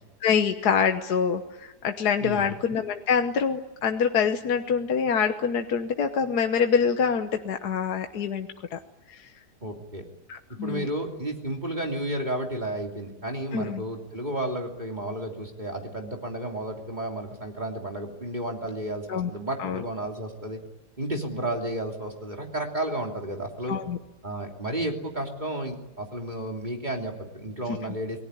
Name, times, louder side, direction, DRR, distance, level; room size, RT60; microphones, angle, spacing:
voice 1, 0.2-8.8 9.1-9.3 10.3-10.9 13.5-13.8 19.1-19.3 19.6-19.8 23.7-24.0, left 6 dB, 70° left, 6 dB, 1.6 m, -25 dB
voice 2, 2.2-2.5 9.6-10.0 10.6-20.6 21.0-23.8 24.2-28.2, right 1 dB, 25° right, 1 dB, 3.3 m, -32 dB
28.0 x 19.5 x 9.9 m, 1.1 s
omnidirectional pair, 1.8 m